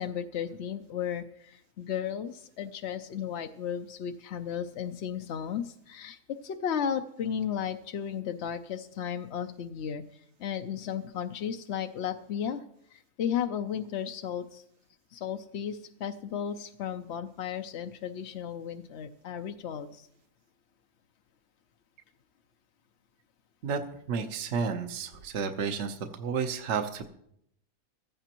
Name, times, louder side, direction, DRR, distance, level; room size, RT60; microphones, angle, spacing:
voice 1, 0.0-12.6 12.9-14.6 15.1-20.1, left 8 dB, 60° left, 6 dB, 0.8 m, -34 dB
voice 2, 24.1-27.1, right 6 dB, 55° right, 6 dB, 1.1 m, -31 dB
16.0 x 14.0 x 3.0 m, 0.73 s
omnidirectional pair, 1.5 m